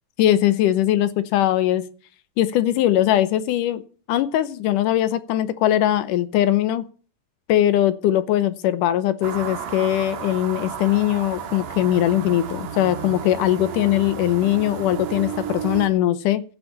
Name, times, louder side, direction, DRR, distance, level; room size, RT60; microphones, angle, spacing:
voice 1, 0.2-1.8 2.4-3.8 4.1-6.9 7.5-16.4, left 12 dB, 80° left, 13 dB, 2.4 m, -20 dB
sound 1, 9.2-15.9, right 8 dB, 75° right, 3.2 m, -32 dB
15.0 x 5.7 x 8.6 m, 0.40 s
omnidirectional pair, 3.8 m